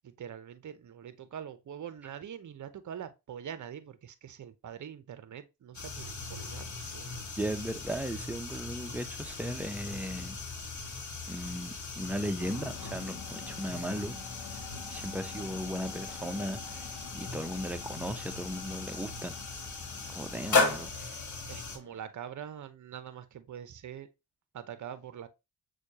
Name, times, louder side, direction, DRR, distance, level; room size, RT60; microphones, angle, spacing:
voice 1, 0.0-7.3 21.5-24.1 24.5-25.3, right 9 dB, 45° right, 0.7 m, -44 dB
sound 1, 5.7-21.8, left 3 dB, 40° left, 1.2 m, -37 dB
voice 2, 7.4-10.4 11.3-14.2 14.9-16.8 17.1-19.3 20.1-21.2, equal, 5° right, 0.6 m, -36 dB
sound 2, 12.4-22.0, left 6 dB, 55° left, 0.9 m, -49 dB
6.2 x 2.4 x 2.8 m
supercardioid pair, 45°, 43 cm